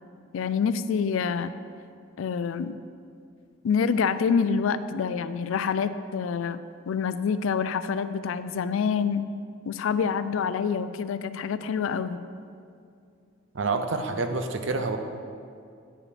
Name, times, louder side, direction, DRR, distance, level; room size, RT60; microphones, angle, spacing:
voice 1, 0.3-1.6 2.2-2.8 3.6-9.3 9.7-12.2, left 6 dB, 70° left, 13 dB, 0.3 m, -27 dB
voice 2, 13.5-15.0, right 3 dB, 65° right, 7 dB, 0.6 m, -27 dB
9.7 x 4.9 x 5.0 m, 2.4 s
head